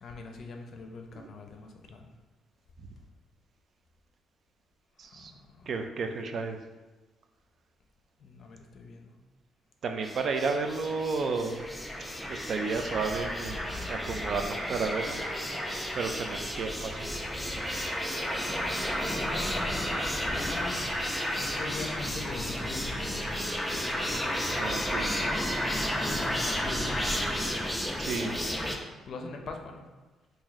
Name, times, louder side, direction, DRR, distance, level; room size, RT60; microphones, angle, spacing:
voice 1, 0.0-2.1 5.3-5.7 8.2-9.1 18.5-20.8 21.3-23.4 23.7-24.5 26.2-27.3 28.0-28.2 29.1-29.9, left 3 dB, 55° left, 3 dB, 0.5 m, -43 dB
voice 2, 5.0-5.3 5.7-6.6 9.8-11.6 12.3-13.6 13.9-15.2 15.9-17.1 24.6-25.1 28.0-28.3, right 4 dB, 55° right, 5 dB, 0.4 m, -32 dB
sound 1, 10.0-28.8, equal, ahead, 0.5 m, -32 dB
3.0 x 2.6 x 3.9 m, 1.2 s
cardioid pair, 90°, 0 cm